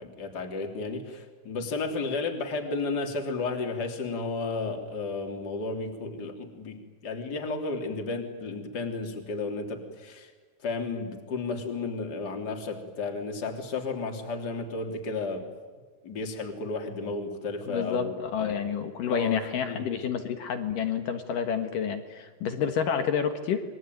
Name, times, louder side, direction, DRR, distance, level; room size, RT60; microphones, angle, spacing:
voice 1, 0.0-10.3 10.6-15.4 16.0-18.6 19.0-19.8, left 3 dB, 25° left, 3 dB, 2.8 m, -33 dB
voice 2, 17.7-23.6, left 7 dB, 60° left, 7 dB, 2.4 m, -29 dB
28.5 x 23.0 x 9.3 m, 1.4 s
omnidirectional pair, 5.6 m